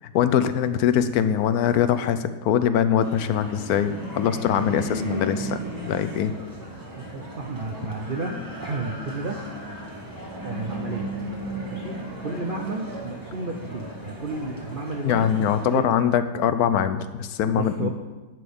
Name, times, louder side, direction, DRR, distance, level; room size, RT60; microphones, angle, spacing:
voice 1, 0.1-5.6 5.8-6.3 15.0-17.9, left 9 dB, 70° left, 11 dB, 1.0 m, -22 dB
sound 1, 3.0-15.8, right 1 dB, 10° right, 1.7 m, -35 dB
voice 2, 7.0-9.4 10.4-11.1 11.7-15.9 17.5-17.9, right 3 dB, 60° right, 2 dB, 0.5 m, -32 dB
11.0 x 9.2 x 3.5 m, 1.2 s
omnidirectional pair, 1.8 m